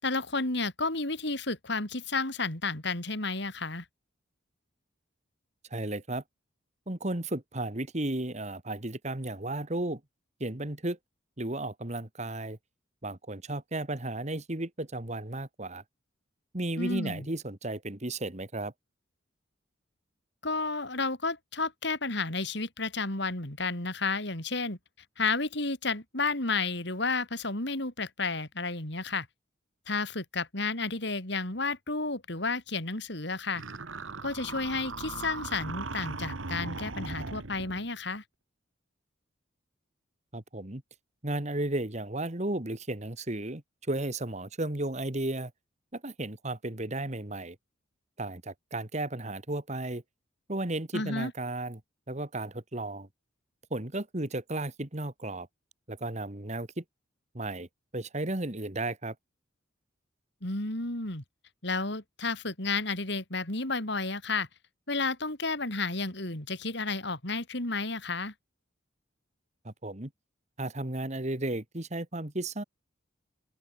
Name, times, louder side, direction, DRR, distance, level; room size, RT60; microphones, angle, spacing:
voice 1, 0.0-3.8 16.8-17.3 20.4-24.8 25.2-29.3 29.9-33.6 34.2-38.2 50.9-51.3 60.4-61.2 61.6-64.5 64.9-68.3, left 3 dB, 60° left, 4.3 m, -32 dB
voice 2, 5.7-6.2 6.9-10.0 10.4-11.0 11.4-12.6 13.0-15.8 16.5-18.7 40.3-40.8 41.2-43.6 43.9-45.5 45.9-47.6 48.2-50.0 50.5-51.8 52.1-53.1 53.7-55.5 55.9-56.8 57.3-57.7 57.9-59.2 69.6-70.1 70.6-72.6, right 2 dB, 35° right, 2.0 m, -34 dB
sound 1, 33.5-37.9, right 3 dB, 85° right, 1.8 m, -38 dB
open air
head